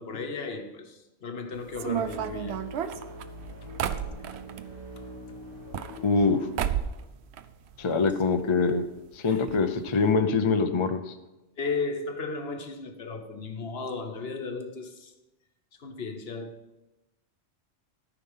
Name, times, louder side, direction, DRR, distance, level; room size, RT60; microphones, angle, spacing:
voice 1, 0.0-2.6 3.6-3.7 7.9-8.1 9.3-9.4 11.6-15.1 15.8-16.6, left 4 dB, 55° left, 1.3 m, -35 dB
sound 1, 1.5-6.7, left 1 dB, 90° right, 3.7 m, -43 dB
sound 2, 1.7-4.7 5.5-6.3 6.6-7.0 7.3-8.1 8.4-8.5 8.7-8.8 9.5-9.6 9.9-10.1, right 9 dB, 65° right, 0.8 m, -32 dB
voice 2, 6.0-6.4 7.8-8.8 9.2-11.0, left 4 dB, 35° left, 0.5 m, -24 dB
13.5 x 5.9 x 5.5 m
omnidirectional pair, 1.3 m